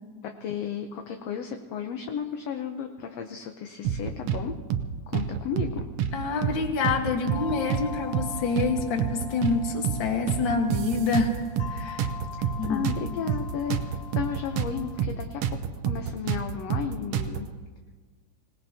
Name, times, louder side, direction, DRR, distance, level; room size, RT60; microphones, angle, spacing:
voice 1, 0.2-4.6 5.1-5.9 12.7-15.6 15.9-17.5, left 7 dB, 75° left, 5 dB, 1.6 m, -34 dB
sound 1, 3.8-4.4 4.7-4.9 5.1-6.1 6.4-6.6 6.8-7.9 8.1-8.3 8.6-9.6 9.8-10.0 10.3-11.7 12.0-14.7 15.0-15.1 15.4-17.4, right 9 dB, 75° right, 1.6 m, -28 dB
voice 2, 6.1-11.3 11.7-12.1 12.6-12.8, left 4 dB, 45° left, 3 dB, 1.7 m, -27 dB
sound 2, 7.3-15.0, left 4 dB, 30° left, 2.0 m, -41 dB
26.5 x 18.5 x 2.8 m, 1.5 s
omnidirectional pair, 3.6 m